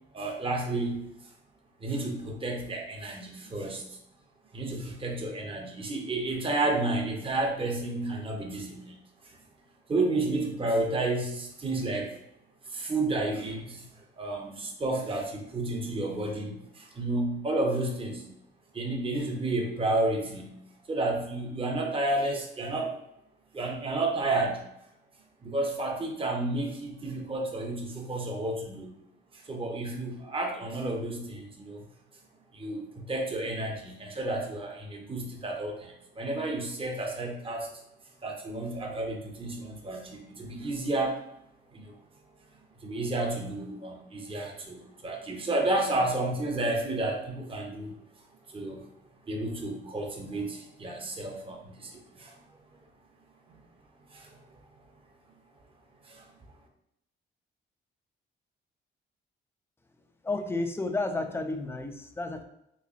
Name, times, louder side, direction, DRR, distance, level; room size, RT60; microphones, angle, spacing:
voice 1, 0.1-1.0 1.8-3.8 4.5-8.9 9.9-12.1 12.7-13.8 14.2-18.2 18.7-20.5 20.9-22.9 23.5-24.6 25.4-28.9 29.5-31.8 32.5-37.7 38.2-41.2 41.7-41.9 42.8-47.9 48.5-48.8 49.3-52.3 54.1-54.3 56.1-56.2, right 2 dB, 25° right, 1 dB, 0.8 m, -31 dB
voice 2, 60.2-62.4, left 2 dB, 10° left, 5 dB, 0.4 m, -31 dB
3.2 x 3.2 x 2.5 m, 0.79 s
cardioid pair, 90°, 20 cm